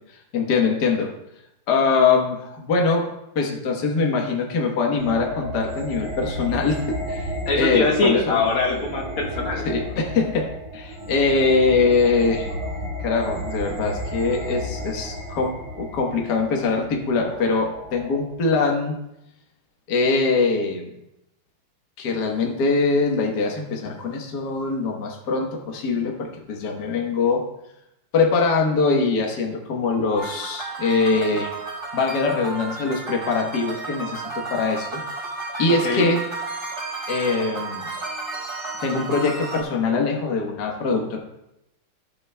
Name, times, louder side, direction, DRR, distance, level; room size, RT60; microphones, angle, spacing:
voice 1, 0.3-1.1 1.7-3.1 3.4-7.3 7.6-8.4 9.7-12.5 13.0-19.0 19.9-20.9 22.0-27.5 28.1-31.5 31.9-35.0 35.6-36.2 37.1-37.9 38.8-41.2, left 4 dB, 55° left, 1 dB, 1.7 m, -22 dB
sound 1, 5.0-18.3, equal, 85° right, 2.7 m, -33 dB
voice 2, 7.5-9.7 35.8-36.1, left 3 dB, 85° left, -1 dB, 2.6 m, -22 dB
sound 2, 30.2-39.6, right 3 dB, 50° right, 4.4 m, -32 dB
16.0 x 8.3 x 2.2 m, 0.84 s
omnidirectional pair, 2.4 m